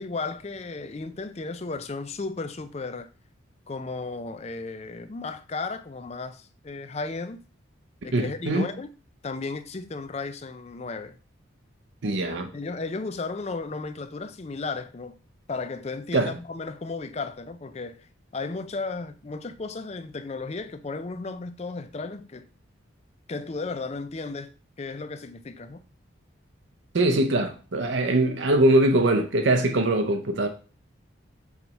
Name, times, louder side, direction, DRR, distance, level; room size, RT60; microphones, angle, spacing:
voice 1, 0.0-3.1 3.7-7.4 8.0-8.9 9.2-11.2 12.5-15.2 15.5-22.5 23.3-24.5 24.8-25.8, left 3 dB, 30° left, 0.4 m, -34 dB
voice 2, 8.1-8.7 12.0-12.5 16.1-16.3 26.9-30.5, right 2 dB, 65° right, 0.6 m, -22 dB
7.2 x 3.3 x 4.0 m
head